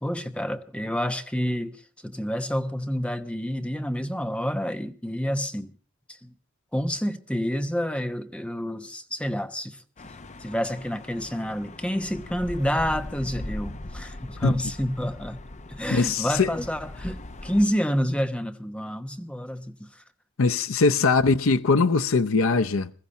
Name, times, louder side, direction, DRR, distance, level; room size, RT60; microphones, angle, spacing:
voice 1, 0.0-5.8 6.1-6.3 6.7-9.8 10.4-15.4 15.7-20.0, equal, 5° left, 1.0 m, -29 dB
sound 1, 10.0-17.7, left 1 dB, 35° left, 0.8 m, -40 dB
voice 2, 15.9-16.5 20.4-22.9, left 4 dB, 75° left, 0.7 m, -21 dB
21.5 x 14.5 x 4.1 m
head